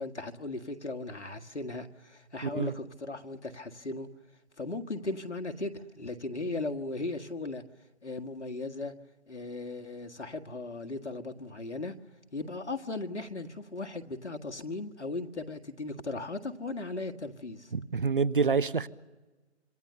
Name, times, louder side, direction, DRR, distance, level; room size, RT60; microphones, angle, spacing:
voice 1, 0.0-4.1 4.6-7.6 8.0-8.9 9.3-11.9 12.3-17.7, left 2 dB, 75° left, 1.9 m, -37 dB
voice 2, 2.4-2.7 17.7-18.9, right 5 dB, 45° right, 0.9 m, -27 dB
27.0 x 25.5 x 6.8 m
figure-of-eight pair, 160°, 35 cm